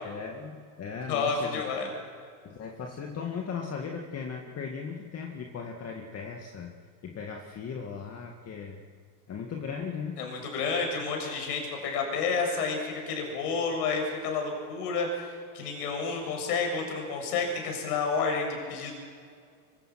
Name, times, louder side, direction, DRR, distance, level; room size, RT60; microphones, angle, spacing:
voice 1, 0.0-1.8 2.4-6.7 7.0-8.8 9.3-10.2, left 6 dB, 30° left, 1 dB, 2.2 m, -37 dB
voice 2, 1.1-1.9 10.2-19.0, left 4 dB, 80° left, 2 dB, 7.4 m, -30 dB
24.5 x 23.0 x 6.1 m, 2.1 s
supercardioid pair, 110°, 46 cm